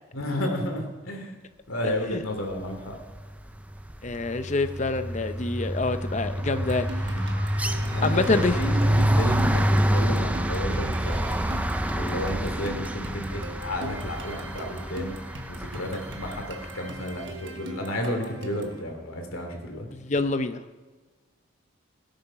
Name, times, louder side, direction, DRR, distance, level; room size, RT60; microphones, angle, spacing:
voice 1, 0.1-1.4 1.7-3.0 7.0-7.3 7.9-11.1 11.9-15.1 15.5-19.9, equal, 85° left, 3 dB, 2.7 m, -32 dB
sound 1, 2.9-3.3 3.6-16.7, equal, 5° right, 0.5 m, -27 dB
voice 2, 4.0-7.0 8.0-8.6 8.9-9.1 19.9-20.6, left 3 dB, 35° left, 10 dB, 0.7 m, -26 dB
sound 2, 6.5-18.8, right 1 dB, 60° right, 1.4 m, -42 dB
17.0 x 8.8 x 5.8 m, 1.3 s
head